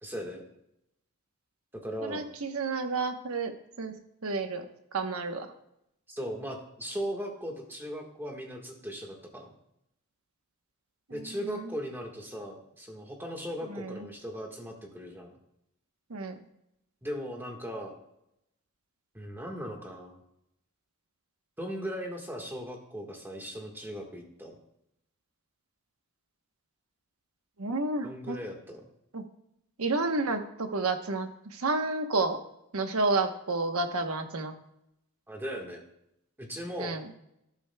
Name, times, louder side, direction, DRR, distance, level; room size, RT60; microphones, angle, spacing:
voice 1, 0.0-0.4 1.7-2.3 6.1-9.5 11.1-15.4 17.0-18.0 19.1-20.2 21.6-24.6 28.0-28.8 35.3-35.8 36.4-37.0, equal, 10° right, 1 dB, 1.4 m, -38 dB
voice 2, 2.0-3.5 3.8-3.9 4.2-4.6 4.9-5.5 11.1-11.7 13.7-14.1 16.1-16.4 27.6-28.4 29.1-29.2 29.8-32.4 32.7-34.5 36.8-37.1, right 3 dB, 70° right, 7 dB, 1.0 m, -30 dB
13.0 x 11.5 x 2.2 m, 0.82 s
head